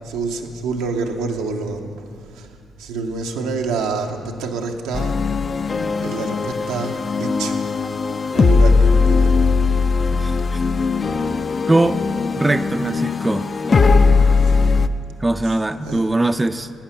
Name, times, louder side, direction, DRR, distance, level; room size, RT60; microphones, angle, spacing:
voice 1, 0.0-1.9 2.3-2.5 2.8-5.2 6.0-7.6 8.3-9.3 14.4-14.5 15.4-16.1, right 4 dB, 85° right, 3 dB, 0.8 m, -27 dB
sound 1, 4.9-14.9, left 4 dB, 40° left, 0.4 m, -18 dB
voice 2, 10.2-10.6 11.7-12.0 12.4-13.5 15.2-16.7, right 2 dB, 20° right, 10 dB, 0.4 m, -20 dB
11.5 x 8.6 x 5.7 m, 2.3 s
supercardioid pair, 55°, 0 cm